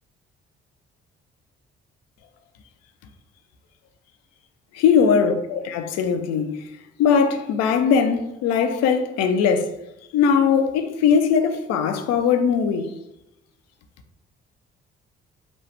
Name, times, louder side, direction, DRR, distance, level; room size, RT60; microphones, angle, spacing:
voice 1, 4.7-6.6 7.0-9.7 10.1-12.9, left 6 dB, 60° left, 0.5 m, -20 dB
2.9 x 2.3 x 3.2 m
hypercardioid pair, 45°, 30 cm